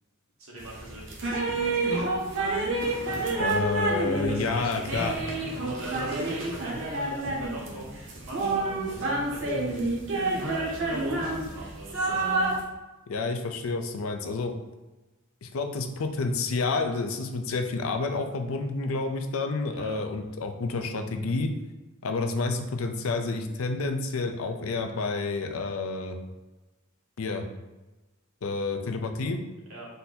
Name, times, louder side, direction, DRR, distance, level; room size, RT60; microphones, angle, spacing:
voice 1, 0.4-1.7 3.0-3.5 4.3-5.1 5.6-9.6 10.4-12.3 19.7-20.0 29.7-29.9, right 2 dB, 85° right, -4 dB, 1.5 m, -42 dB
sound 1, 0.6-12.6, right 2 dB, 60° right, 0.9 m, -29 dB
voice 2, 3.4-5.1 13.1-14.5 15.4-21.5 22.0-26.2 27.2-27.5 28.4-29.4, left 3 dB, 75° left, 6 dB, 0.5 m, -29 dB
3.9 x 2.7 x 4.1 m, 1.1 s
head